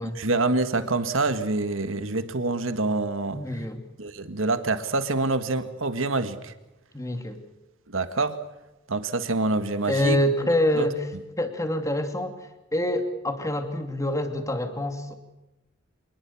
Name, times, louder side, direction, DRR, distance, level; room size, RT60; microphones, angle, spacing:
voice 1, 0.0-3.4 4.0-6.5 7.9-8.4 8.9-10.2 10.8-10.9, right 3 dB, 80° right, 10 dB, 1.9 m, -26 dB
voice 2, 3.3-3.8 6.9-7.4 9.9-11.1 11.4-12.4 12.7-15.2, left 1 dB, 15° left, 6 dB, 2.6 m, -26 dB
26.5 x 20.5 x 7.2 m, 0.98 s
head